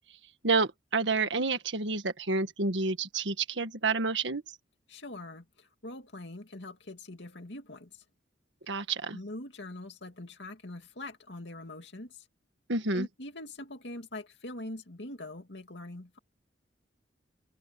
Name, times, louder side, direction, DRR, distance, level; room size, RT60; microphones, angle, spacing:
voice 1, 0.4-4.4 8.7-9.2 12.7-13.1, right 3 dB, 90° right, 1.6 m, -29 dB
voice 2, 4.9-8.0 9.1-12.3 12.9-16.2, left 1 dB, 70° left, 2.5 m, -43 dB
head